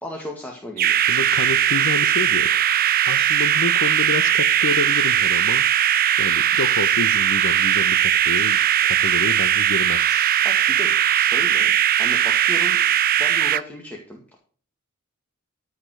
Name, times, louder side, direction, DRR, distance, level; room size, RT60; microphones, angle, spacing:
voice 1, 0.0-1.0 10.4-12.8 13.2-14.3, left 1 dB, 10° left, 0 dB, 1.9 m, -35 dB
sound 1, 0.8-13.6, right 11 dB, 45° right, 0.4 m, -19 dB
voice 2, 1.1-10.3, left 4 dB, 65° left, 15 dB, 0.7 m, -29 dB
14.0 x 5.2 x 6.4 m, 0.43 s
head